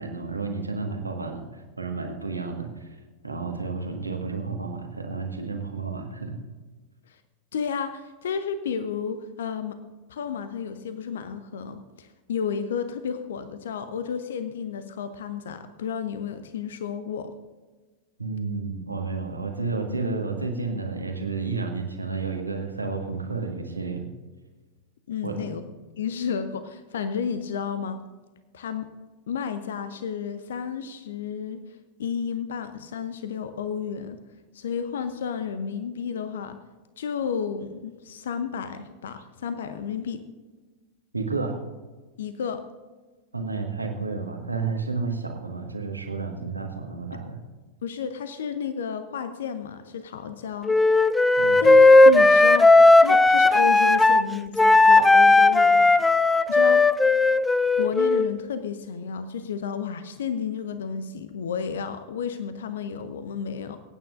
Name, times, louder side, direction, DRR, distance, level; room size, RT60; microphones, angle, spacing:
voice 1, 0.0-3.0 3.2-6.3 18.2-24.1 25.2-25.5 41.1-41.6 43.3-47.4 51.4-51.7, right 4 dB, 80° right, 3 dB, 1.7 m, -31 dB
voice 2, 7.5-9.8 10.1-17.3 25.1-25.6 26.0-28.0 28.5-28.9 29.3-31.6 32.0-34.2 34.5-36.6 37.0-40.2 42.2-42.6 47.8-50.8 51.6-55.9 56.5-56.9 57.8-63.8, left 7 dB, 60° left, 11 dB, 0.7 m, -32 dB
Wind instrument woodwind instrument, 50.7-54.2 54.6-58.3, left 2 dB, 10° left, 0.4 m, -16 dB
26.0 x 9.1 x 2.6 m, 1.3 s
figure-of-eight pair, 90°, 0 cm